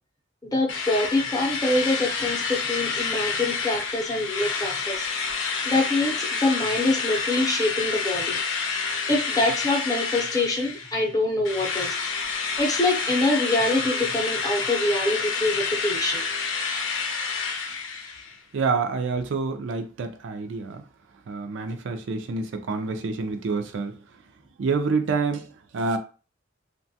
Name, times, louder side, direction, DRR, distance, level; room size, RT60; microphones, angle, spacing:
voice 1, 0.4-5.1 5.6-8.4 9.1-12.0 12.6-16.2, left 2 dB, 20° left, 0.6 m, -25 dB
Drill, 0.7-11.1 11.4-18.3, left 5 dB, 75° left, 0.6 m, -29 dB
voice 2, 18.5-20.8 21.3-23.9 24.6-25.4 25.7-26.0, right 4 dB, 70° right, 0.4 m, -27 dB
2.9 x 2.2 x 2.7 m
head